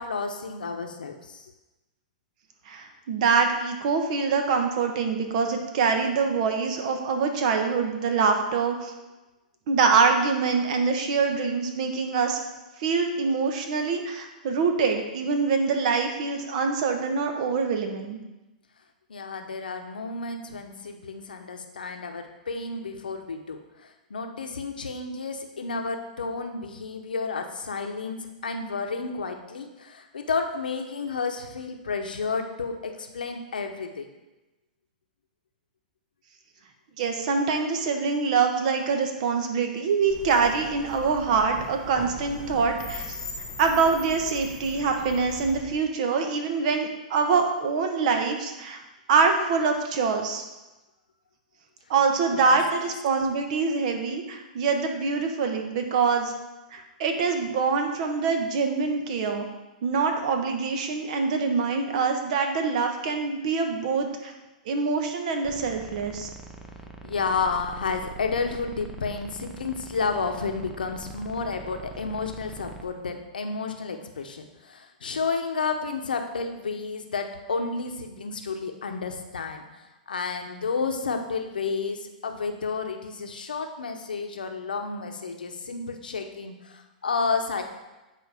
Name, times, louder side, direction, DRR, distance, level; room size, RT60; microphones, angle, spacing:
voice 1, 0.0-1.5 19.1-34.1 52.3-52.6 67.0-79.6 80.1-87.6, left 4 dB, 85° left, 5 dB, 0.8 m, -31 dB
voice 2, 2.7-8.9 9.7-12.4 12.8-18.2 37.0-43.2 43.6-48.8 49.1-50.4 51.9-56.3 56.7-59.5 59.8-64.3 64.6-66.3, right 5 dB, 55° right, 4 dB, 1.1 m, -25 dB
sound 1, 40.1-45.7, left 1 dB, 10° left, 1.5 m, -40 dB
sound 2, 65.4-72.9, right 4 dB, 10° right, 0.6 m, -43 dB
9.2 x 4.2 x 3.5 m, 1.1 s
hypercardioid pair, 120°, 5 cm